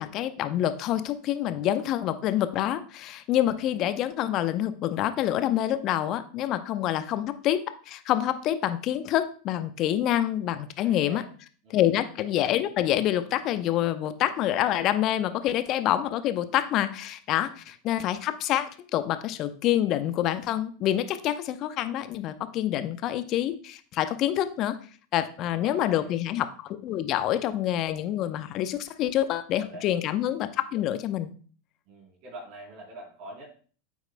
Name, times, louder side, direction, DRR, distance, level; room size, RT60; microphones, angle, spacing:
voice 1, 0.0-7.6 7.9-11.2 11.7-24.8 25.1-31.3, left 12 dB, 45° left, 12 dB, 0.8 m, -27 dB
voice 2, 10.8-11.3 11.6-11.8 25.4-26.1 29.6-29.9 31.9-33.5, right 1 dB, 50° right, -3 dB, 3.6 m, -44 dB
9.0 x 8.1 x 2.2 m, 0.41 s
figure-of-eight pair, 85°, 0 cm